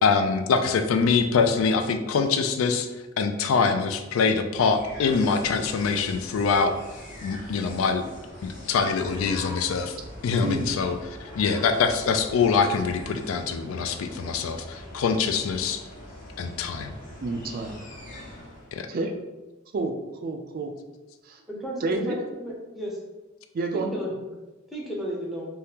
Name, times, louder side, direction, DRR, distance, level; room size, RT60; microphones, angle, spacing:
voice 1, 0.0-2.9 3.2-6.8 7.2-8.0 8.4-10.0 10.2-11.0 11.4-15.8 16.4-16.9 18.7-18.9, left 5 dB, 90° left, 7 dB, 0.3 m, -24 dB
sound 1, 4.5-18.8, left 1 dB, 40° left, 0.7 m, -43 dB
voice 2, 10.4-10.7 17.2-17.8 18.9-19.1 19.7-20.0 20.2-20.7 21.3-21.4 21.8-22.1 23.5-23.9, right 3 dB, 45° right, 3 dB, 0.3 m, -29 dB
voice 3, 21.5-23.0 23.7-24.1 24.7-25.5, equal, ahead, -3 dB, 0.6 m, -33 dB
3.4 x 2.3 x 2.8 m, 1.1 s
head